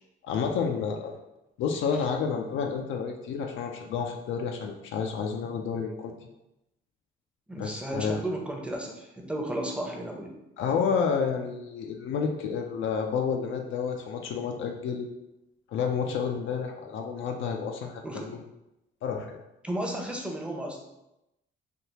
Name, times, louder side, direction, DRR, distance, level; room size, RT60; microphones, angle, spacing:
voice 1, 0.2-1.1 1.6-6.1 7.6-8.2 10.6-15.1 15.7-18.4 19.0-19.4, left 6 dB, 75° left, 3 dB, 0.4 m, -30 dB
voice 2, 7.5-10.3 18.0-18.3 19.6-20.8, right 1 dB, 5° right, 1 dB, 0.6 m, -33 dB
3.4 x 2.3 x 2.8 m, 0.89 s
cardioid pair, 90°, 20 cm